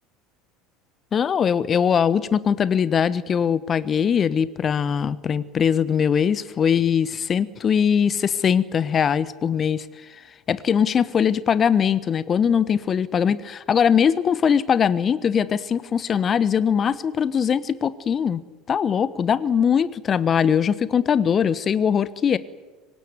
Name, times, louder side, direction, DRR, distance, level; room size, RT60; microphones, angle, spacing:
voice 1, 1.1-9.8 10.5-18.4 18.7-22.4, left 7 dB, 35° left, 17 dB, 1.2 m, -21 dB
25.0 x 18.5 x 9.6 m, 1.3 s
figure-of-eight pair, 70°, 0 cm